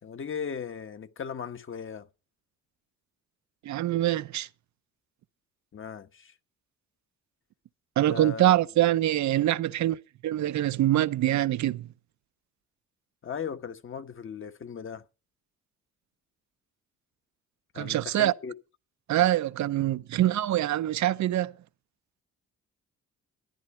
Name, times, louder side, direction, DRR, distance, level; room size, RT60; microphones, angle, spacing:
voice 1, 0.0-2.1 5.7-6.3 8.1-8.5 13.2-15.0 17.7-18.5, left 7 dB, 40° left, 1.3 m, -37 dB
voice 2, 3.6-4.5 8.0-10.0 10.2-11.9 17.8-18.3 19.1-21.5, right 13 dB, 70° right, 0.7 m, -24 dB
13.5 x 9.9 x 4.3 m
cardioid pair, 90°, 30 cm